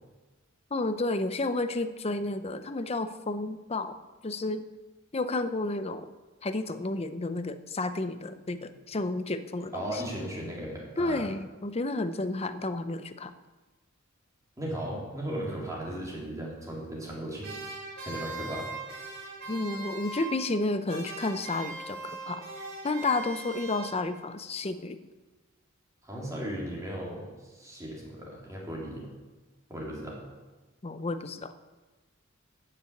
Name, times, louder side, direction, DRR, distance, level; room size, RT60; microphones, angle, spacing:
voice 1, 0.7-4.0 4.2-4.6 5.1-6.1 6.4-10.0 11.0-13.3 19.5-22.4 22.8-25.0 30.8-31.5, left 2 dB, 30° left, 11 dB, 0.7 m, -31 dB
voice 2, 9.7-11.3 14.6-17.5 18.0-18.7 26.0-29.2 29.7-30.2, right 1 dB, 15° right, -4 dB, 3.7 m, -36 dB
sound 1, 17.4-20.6 20.9-24.3, right 3 dB, 55° right, 3.6 m, -40 dB
14.0 x 6.8 x 8.5 m, 1.2 s
head